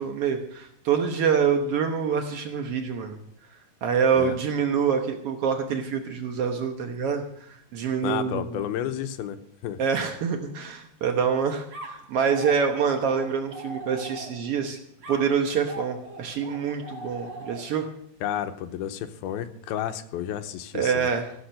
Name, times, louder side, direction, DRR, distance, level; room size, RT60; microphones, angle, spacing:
voice 1, 0.0-3.2 3.8-8.6 9.8-14.8 15.1-17.9 20.7-21.3, right 6 dB, 85° right, 4 dB, 1.3 m, -26 dB
voice 2, 8.0-9.8 18.2-21.1, left 10 dB, 85° left, 9 dB, 2.7 m, -31 dB
sound 1, 11.7-14.6 15.0-17.9, right 1 dB, 45° right, 2.1 m, -40 dB
16.0 x 8.1 x 6.5 m, 0.70 s
omnidirectional pair, 4.3 m